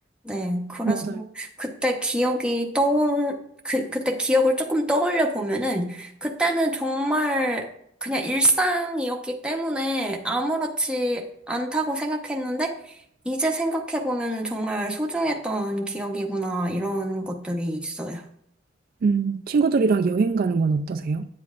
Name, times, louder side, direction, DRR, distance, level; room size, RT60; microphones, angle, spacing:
voice 1, 0.2-3.4 3.6-7.7 8.0-12.9 13.2-18.2, equal, 5° right, 0.9 m, -25 dB
voice 2, 0.8-1.2 19.0-21.3, right 4 dB, 50° right, 0.3 m, -22 dB
9.6 x 7.6 x 2.4 m
head